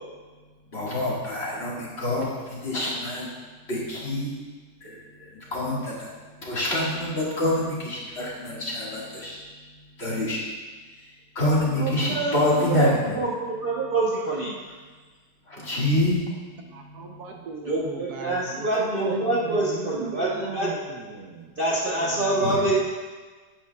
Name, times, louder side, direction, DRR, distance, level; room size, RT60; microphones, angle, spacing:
voice 1, 0.7-3.3 3.7-4.3 4.8-6.1 6.4-9.4 10.0-10.4 11.4-13.1 15.5-16.2 16.6-17.2 22.0-22.1 22.4-22.7, left 1 dB, 40° left, -7 dB, 2.1 m, -26 dB
voice 2, 11.7-12.4 12.7-14.6 17.7-20.7 21.6-22.8, right 2 dB, 40° right, -6 dB, 0.9 m, -26 dB
voice 3, 16.7-21.5, right 5 dB, 70° right, 2 dB, 1.2 m, -38 dB
10.0 x 8.3 x 2.3 m, 1.4 s
omnidirectional pair, 1.8 m